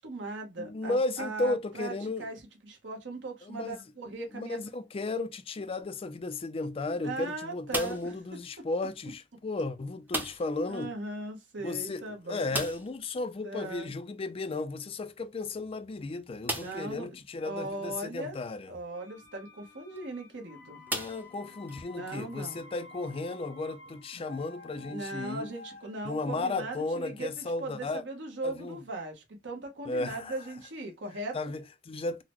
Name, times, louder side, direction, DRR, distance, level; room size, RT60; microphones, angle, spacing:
voice 1, 0.0-1.9 2.2-2.4 2.6-4.6 7.0-8.1 10.7-12.5 13.4-13.9 16.5-18.4 18.7-20.8 21.9-22.6 24.8-31.4, right 2 dB, 70° right, 1.0 m, -39 dB
voice 2, 0.6-2.3 3.4-3.9 4.3-10.9 11.6-18.7 20.9-25.5 26.0-28.0 28.4-28.8 29.9-30.4 31.3-32.2, left 2 dB, 30° left, 0.4 m, -34 dB
sound 1, 7.7-8.2 10.1-10.6 10.9-11.0 11.3-11.4 12.5-13.0 14.8-14.9 15.5-15.6 16.4-16.9 17.7-17.8 19.8-20.0 20.9-21.8, right 2 dB, 10° right, 0.6 m, -36 dB
sound 2, 18.9-28.6 28.9-29.0, left 2 dB, 75° left, 0.6 m, -53 dB
3.8 x 2.1 x 3.0 m
head